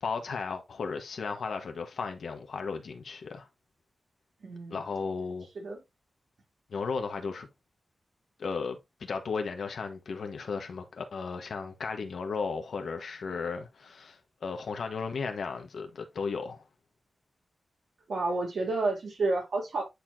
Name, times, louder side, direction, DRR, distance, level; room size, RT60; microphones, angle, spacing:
voice 1, 0.0-3.5 4.7-5.5 6.7-7.5 8.4-16.6, left 5 dB, 80° left, 1.4 m, -35 dB
voice 2, 4.4-4.8 5.5-5.8 18.1-19.8, right 3 dB, 75° right, 3.2 m, -30 dB
9.7 x 4.4 x 2.8 m
wide cardioid pair, 85°, 0 cm